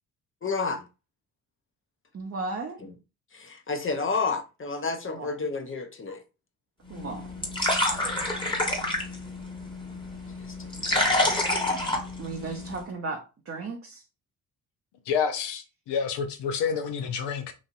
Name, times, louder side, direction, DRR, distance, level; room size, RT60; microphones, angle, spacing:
voice 1, 0.4-0.8 2.8-2.9 3.3-6.2 8.0-8.5 10.4-11.4, left 4 dB, 30° left, 0.7 m, -32 dB
voice 2, 2.1-2.8 5.1-5.4 6.9-7.3 12.2-14.0, right 3 dB, 30° right, 0.8 m, -35 dB
sound 1, 6.9-12.8, left 1 dB, 10° left, 1.2 m, -28 dB
voice 3, 15.1-17.5, left 6 dB, 65° left, 0.8 m, -28 dB
3.1 x 2.6 x 2.5 m
hypercardioid pair, 45°, 44 cm